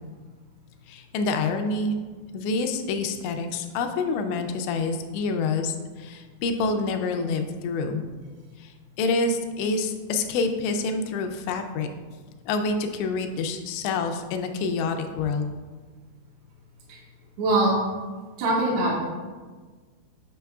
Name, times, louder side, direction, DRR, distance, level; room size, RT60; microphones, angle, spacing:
voice 1, 0.9-2.0 2.3-8.0 8.6-11.9 12.5-15.5, left 3 dB, 85° left, 6 dB, 2.7 m, -27 dB
voice 2, 17.4-17.8 18.4-18.9, right 2 dB, 70° right, -5 dB, 3.0 m, -22 dB
8.4 x 6.1 x 2.3 m, 1.4 s
omnidirectional pair, 5.2 m